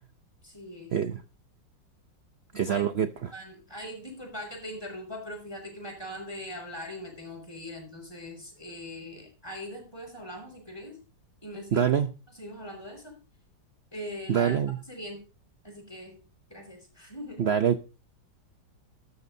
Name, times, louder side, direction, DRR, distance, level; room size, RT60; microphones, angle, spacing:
voice 1, 0.4-0.9 2.5-3.0 3.3-11.0 11.4-11.9 12.3-13.2 13.9-14.5 14.9-15.2 15.6-16.2 16.5-17.5, equal, 15° left, 0 dB, 6.2 m, -41 dB
voice 2, 2.5-3.3 11.7-12.1 14.3-14.8 17.4-17.8, right 8 dB, 85° right, 10 dB, 0.5 m, -25 dB
14.0 x 13.0 x 2.7 m, 0.33 s
omnidirectional pair, 2.0 m